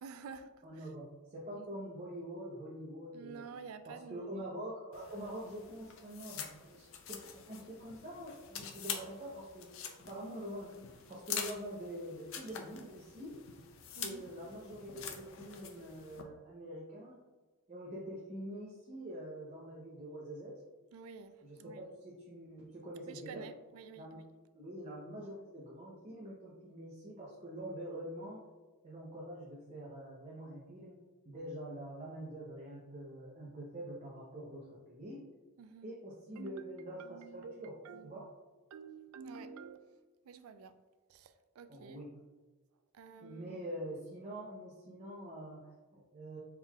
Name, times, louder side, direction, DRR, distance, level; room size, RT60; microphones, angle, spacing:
voice 1, 0.0-0.9 1.5-1.7 3.1-4.4 14.0-14.2 20.9-21.8 23.1-24.2 35.6-35.9 36.4-38.2 38.7-39.8 40.2-40.8 41.1-42.0 42.9-43.6, right 5 dB, 75° right, 11 dB, 0.3 m, -50 dB
voice 2, 0.6-3.5 3.8-9.7 10.1-13.4 14.0-17.2 17.7-20.6 21.4-23.5 24.0-24.2 24.5-28.4 28.8-35.2 35.8-37.7 38.0-38.3 41.7-42.1 43.1-46.4, equal, 30° right, -5 dB, 0.6 m, -45 dB
sound 1, 4.9-16.2, left 7 dB, 65° left, 0.4 m, -46 dB
4.4 x 3.8 x 2.3 m, 1.3 s
head